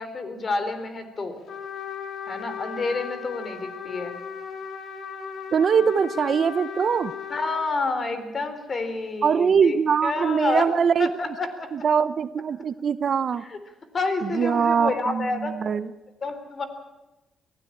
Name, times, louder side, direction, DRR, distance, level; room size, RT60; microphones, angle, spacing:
voice 1, 0.0-1.4 2.3-4.1 7.3-9.8 10.0-10.7 11.0-11.9 13.4-13.6 13.9-15.5 16.2-16.6, left 3 dB, 40° left, 9 dB, 3.9 m, -29 dB
Trumpet, 1.5-7.7, left 7 dB, 65° left, 2.6 m, -36 dB
voice 2, 5.5-7.1 9.2-11.1 11.7-13.4 14.2-15.9, right 6 dB, 50° right, 15 dB, 0.8 m, -22 dB
23.5 x 16.0 x 8.7 m, 1.0 s
cardioid pair, 90°, 0 cm